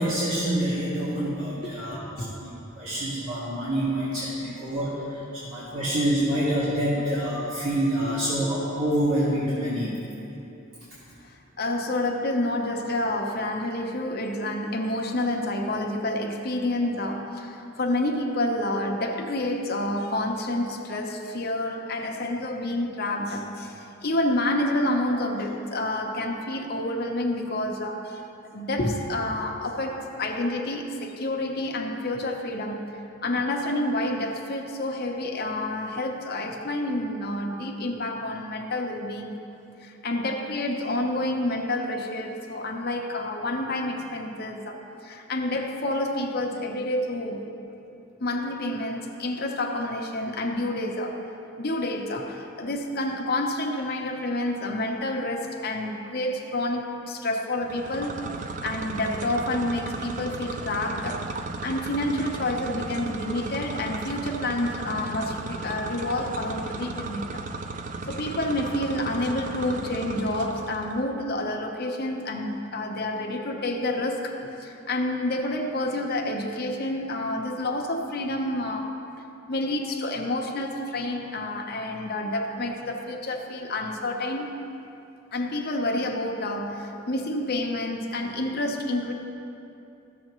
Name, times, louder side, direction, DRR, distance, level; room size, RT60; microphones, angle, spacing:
voice 1, 0.0-2.5 2.8-5.2 5.5-9.9, right 1 dB, 75° right, -11 dB, 1.9 m, -26 dB
voice 2, 1.5-2.3 7.0-7.1 11.2-28.2 28.5-39.5 39.8-47.5 48.2-51.2 51.6-61.3 61.6-67.4 68.1-78.9 79.5-84.5 85.3-89.1, left 1 dB, 50° left, 1 dB, 0.8 m, -29 dB
sound 1, 57.6-71.0, right 3 dB, 35° right, 0.3 m, -35 dB
14.5 x 6.6 x 3.0 m, 2.8 s
head